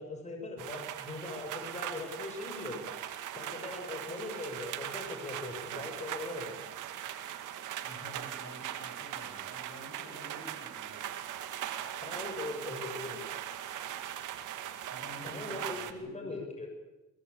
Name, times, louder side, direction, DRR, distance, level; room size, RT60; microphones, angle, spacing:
voice 1, 0.0-2.8 3.3-6.6 12.0-13.2 15.2-16.7, left 2 dB, 25° left, 3 dB, 7.3 m, -40 dB
sound 1, 0.6-15.9, right 11 dB, 85° right, 2.3 m, -40 dB
voice 2, 7.8-11.0 14.9-16.5, left 1 dB, 40° left, 5 dB, 7.6 m, -50 dB
23.5 x 22.0 x 8.6 m, 1.0 s
cardioid pair, 90°, 30 cm